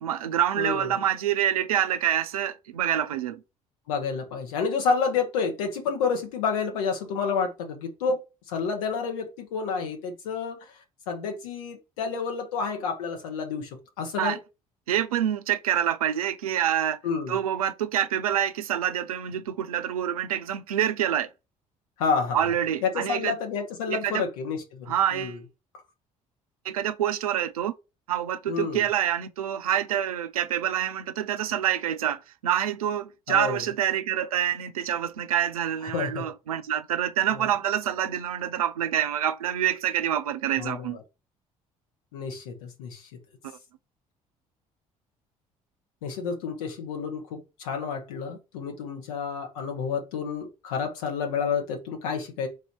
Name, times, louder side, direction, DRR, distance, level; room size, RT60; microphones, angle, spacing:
voice 1, 0.0-3.4 14.2-14.4 14.9-17.0 17.3-21.3 22.3-23.3 23.9-24.2 24.9-25.4 26.6-27.7 28.1-41.0, right 10 dB, 85° right, 0.4 m, -26 dB
voice 2, 0.6-1.0 3.9-8.2 8.5-10.6 11.1-13.7 14.0-14.4 17.0-17.4 22.0-22.5 22.8-25.4 28.5-28.8 33.3-33.7 35.9-36.3 37.3-37.4 40.6-41.0 42.1-43.1 46.0-52.5, left 5 dB, 75° left, 1.2 m, -29 dB
4.1 x 2.6 x 4.5 m
figure-of-eight pair, 55°, 18 cm